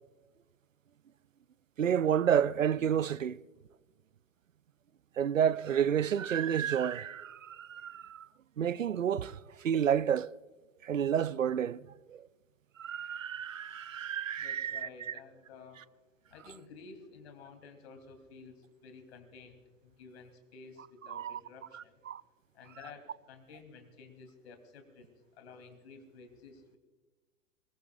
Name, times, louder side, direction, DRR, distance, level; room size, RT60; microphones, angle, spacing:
voice 1, 1.8-3.4 5.2-8.3 8.6-10.3 10.8-12.3 12.8-15.1 21.1-21.4 21.7-22.2, right 8 dB, 80° right, 0.6 m, -30 dB
voice 2, 14.4-15.8 16.3-22.0 22.5-26.8, left 4 dB, 55° left, 3.0 m, -52 dB
25.0 x 21.5 x 2.4 m
figure-of-eight pair, 100°, 39 cm